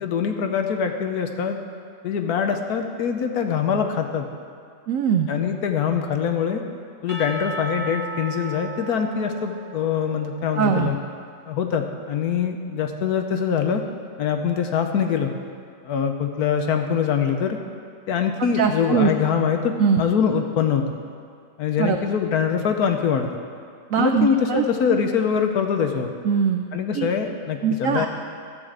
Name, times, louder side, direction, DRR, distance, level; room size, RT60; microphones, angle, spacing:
voice 1, 0.0-1.6 2.0-4.3 5.3-6.6 7.0-11.0 11.5-13.8 14.2-15.3 15.8-17.6 18.1-20.8 21.6-23.3 24.0-26.1 26.7-28.1, left 7 dB, 65° left, 5 dB, 1.1 m, -23 dB
voice 2, 4.9-5.3 10.6-10.9 18.5-19.1 19.8-20.0 21.8-22.0 23.9-25.0 26.2-26.6 26.9-27.1 27.6-28.1, right 7 dB, 85° right, 5 dB, 0.7 m, -21 dB
Percussion / Church bell, 7.1-11.1, right 2 dB, 35° right, 0.9 m, -36 dB
13.5 x 4.8 x 7.7 m, 2.2 s
omnidirectional pair, 2.0 m